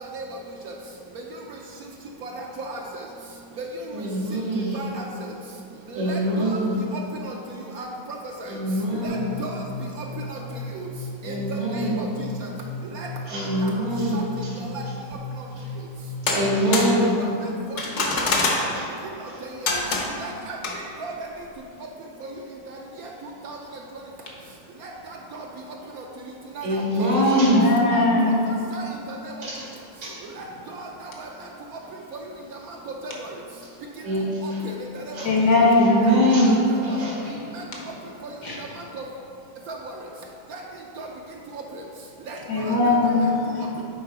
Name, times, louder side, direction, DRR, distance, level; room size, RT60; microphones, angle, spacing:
voice 1, 2.2-2.8 4.7-5.0 5.9-6.6 6.9-7.3 7.8-7.9 8.4-8.6 9.0-9.5 10.3-10.4 10.7-10.8 11.2-12.1 12.4-12.5 12.9-13.1 13.6-13.7 14.1-14.2 14.7-14.8 16.3-17.1 18.1-18.2 18.6-18.7 19.4-19.5 20.2-20.6 21.0-21.1 23.4-23.6 24.8-24.9 25.3-25.4 26.0-26.1 26.6-27.1 27.9-28.4 28.7-29.3 30.4-30.5 30.8-30.9 31.2-31.3 32.7-32.8 33.0-33.1 34.4-34.7 35.2-35.3 36.0-36.5 36.9-37.0 37.5-37.6 38.6-38.7 38.9-39.0 39.7-39.8 40.5-40.6 41.0-41.1 41.5-41.6 42.3-42.7 43.0-43.1, right 3 dB, 70° right, 0 dB, 0.9 m, -36 dB
voice 2, 3.9-4.8 5.9-6.7 8.5-9.4 11.2-12.1 13.3-14.5 16.2-17.2 26.6-27.7 29.4-29.6 30.0-30.1 31.5-31.6 34.0-34.6 35.1-35.3 35.6-37.6, equal, 85° right, -6 dB, 2.5 m, -23 dB
sound 1, 9.0-16.6, left 2 dB, 35° left, 0.3 m, -36 dB
sound 2, 16.3-17.0 17.8-18.7 19.7-20.2 20.6-20.8, left 3 dB, 55° left, 1.0 m, -24 dB
voice 3, 27.3-28.4 35.2-36.1 38.4-38.6 42.5-43.8, left 2 dB, 75° left, -3 dB, 1.9 m, -20 dB
8.5 x 3.7 x 4.8 m, 2.7 s
omnidirectional pair, 1.9 m